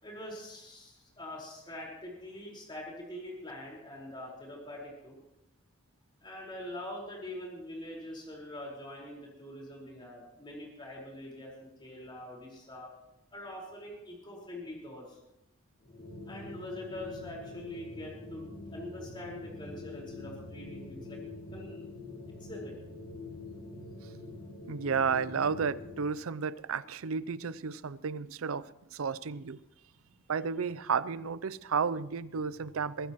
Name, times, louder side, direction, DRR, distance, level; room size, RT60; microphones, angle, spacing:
voice 1, 0.0-5.2 6.2-12.9 13.3-15.2 16.3-21.2 21.5-21.9 22.3-22.7, left 1 dB, 25° left, -2 dB, 4.7 m, -44 dB
sound 1, 15.8-26.1, left 2 dB, 45° left, 2.5 m, -45 dB
voice 2, 24.7-29.6 30.3-33.1, right 6 dB, 80° right, 17 dB, 0.5 m, -32 dB
22.5 x 15.5 x 3.1 m, 0.85 s
head